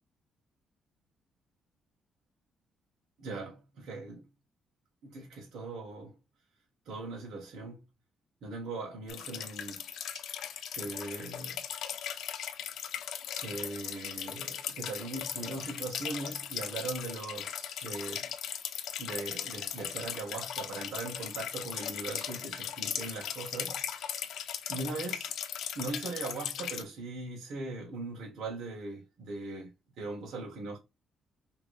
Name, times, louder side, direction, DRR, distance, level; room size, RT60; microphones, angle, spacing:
voice 1, 3.2-4.3 5.0-6.1 6.8-7.9 8.4-9.9 10.1-10.2 10.7-11.6 13.4-18.3 19.0-24.2 24.7-25.3 25.7-29.7 30.0-30.8, right 3 dB, 75° right, 1.5 m, -40 dB
sound 1, 9.1-26.8, left 9 dB, 80° left, 0.8 m, -38 dB
5.9 x 3.1 x 2.5 m
cardioid pair, 90°, 0 cm